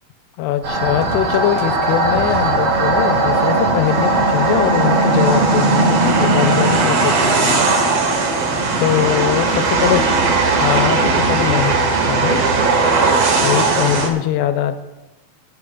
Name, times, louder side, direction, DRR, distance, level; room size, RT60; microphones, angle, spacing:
voice 1, 0.4-7.7 8.8-10.0 10.6-12.4 13.4-14.7, left 11 dB, 85° left, 9 dB, 2.7 m, -21 dB
sound 1, 0.6-14.1, right 3 dB, 65° right, 1.6 m, -17 dB
23.0 x 8.9 x 2.4 m, 1.1 s
omnidirectional pair, 4.8 m